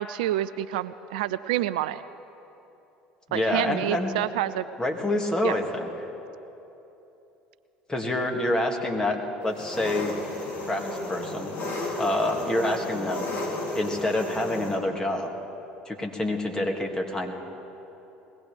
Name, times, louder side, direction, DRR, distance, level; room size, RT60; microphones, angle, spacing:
voice 1, 0.0-2.0 3.3-4.6 5.4-5.6, right 13 dB, 75° right, 14 dB, 0.4 m, -28 dB
voice 2, 3.3-4.1 4.8-5.9 7.9-10.1 10.7-11.6 12.0-13.3 13.7-15.3 15.9-17.3, left 1 dB, 15° left, 1 dB, 2.2 m, -27 dB
Engine, 9.5-14.8, left 1 dB, 55° left, 3.2 m, -33 dB
21.5 x 17.5 x 3.5 m, 3.0 s
hypercardioid pair, 70°, 5 cm